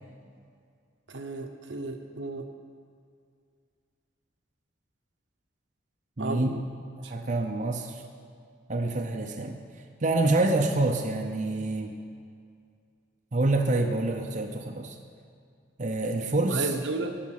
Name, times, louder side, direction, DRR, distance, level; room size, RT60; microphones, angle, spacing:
voice 1, 1.1-2.5 6.2-6.6 7.0-7.1 16.5-17.2, right 2 dB, 80° right, 4 dB, 1.0 m, -33 dB
voice 2, 6.2-6.5 7.1-8.0 8.7-9.6 10.0-11.9 13.3-15.0 15.8-16.7, right 2 dB, 40° right, 2 dB, 0.7 m, -27 dB
13.5 x 5.2 x 8.4 m, 2.3 s
head